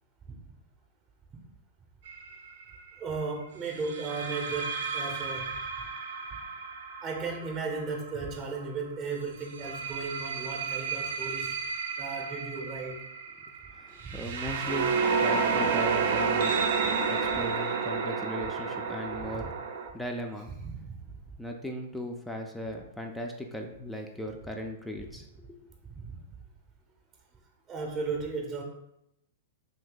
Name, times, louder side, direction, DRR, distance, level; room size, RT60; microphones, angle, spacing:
sound 1, 2.1-2.3 3.8-8.6 9.4-19.9, right 5 dB, 60° right, 0.4 m, -31 dB
voice 1, 3.0-5.6 7.0-11.6 12.0-13.0 14.0-14.2 19.2-19.5 20.6-20.9 26.0-26.2 27.7-28.6, right 4 dB, 25° right, 1 dB, 0.7 m, -35 dB
voice 2, 13.7-16.6 17.1-19.6 19.9-20.5 21.4-25.7, left 1 dB, 5° left, 2 dB, 0.4 m, -38 dB
2.7 x 2.7 x 3.7 m, 0.80 s
hypercardioid pair, 120°, 0 cm